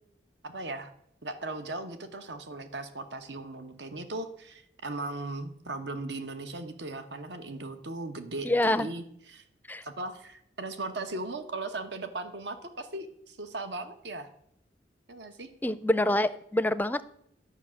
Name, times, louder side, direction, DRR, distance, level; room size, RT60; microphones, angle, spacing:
voice 1, 0.4-0.9 1.2-9.4 9.8-14.3 15.1-15.5, right 2 dB, 75° right, 9 dB, 1.1 m, -38 dB
voice 2, 8.4-8.9 9.7-9.8 15.6-17.0, left 1 dB, 10° left, 14 dB, 0.4 m, -26 dB
11.0 x 6.1 x 8.6 m, 0.73 s
head